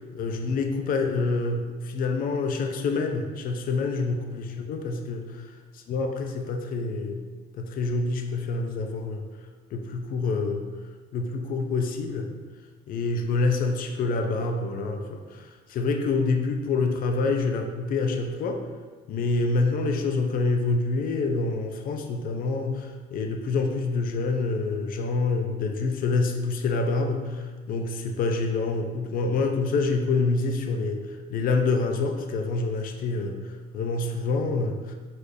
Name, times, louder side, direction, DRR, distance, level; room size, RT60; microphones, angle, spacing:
voice 1, 0.1-5.2 5.9-7.2 7.5-9.2 9.7-10.6 11.1-12.3 12.9-15.4 15.7-18.6 19.1-31.0 31.3-33.4 33.7-34.9, left 3 dB, 55° left, 4 dB, 0.5 m, -27 dB
4.8 x 4.2 x 2.7 m, 1.4 s
cardioid pair, 110°, 17 cm